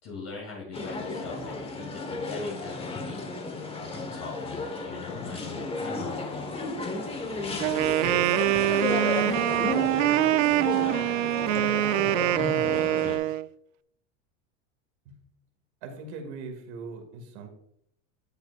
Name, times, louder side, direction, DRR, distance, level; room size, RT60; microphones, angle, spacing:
voice 1, 0.0-3.3 3.8-6.8 7.0-7.6 8.0-11.9 12.6-13.3, left 4 dB, 40° left, -4 dB, 2.7 m, -43 dB
sound 1, 0.7-13.2, left 3 dB, 15° left, 1.2 m, -33 dB
Wind instrument woodwind instrument, 7.6-13.5, right 15 dB, 90° right, 0.5 m, -24 dB
voice 2, 15.8-17.5, right 4 dB, 70° right, 4 dB, 2.2 m, -40 dB
10.5 x 8.0 x 2.4 m, 0.70 s
supercardioid pair, 135°, 37 cm